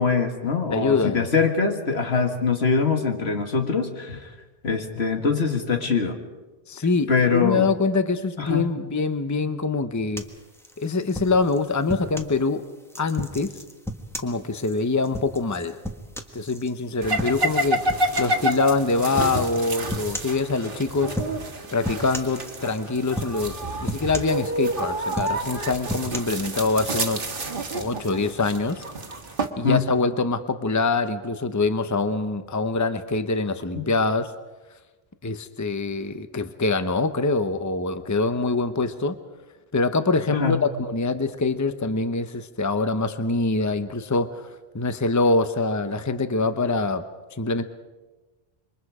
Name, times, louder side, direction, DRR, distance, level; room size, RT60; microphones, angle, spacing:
voice 1, 0.0-4.3 4.6-6.2 7.1-7.7 8.4-8.7 29.6-29.9 33.8-33.9 40.3-40.6, left 5 dB, 80° left, 5 dB, 2.2 m, -23 dB
voice 2, 0.7-1.3 6.7-10.3 10.8-12.7 13.0-13.6 14.2-15.8 16.3-17.9 18.2-21.2 21.7-27.3 27.7-28.8 29.6-34.3 35.2-39.2 39.7-44.5 44.7-47.0 47.4-47.6, left 3 dB, 20° left, 10 dB, 0.8 m, -24 dB
sound 1, 10.2-12.4 12.9-16.7 17.2-17.6 17.9-18.4 19.2-19.4 19.9-20.4 21.1-21.5 21.8-22.8 23.2-23.5 23.9-24.7 25.1-26.2, equal, ahead, 1.5 m, -34 dB
sound 2, 17.0-29.5, right 1 dB, 60° right, 1.6 m, -29 dB
27.0 x 23.5 x 4.9 m, 1.2 s
omnidirectional pair, 1.1 m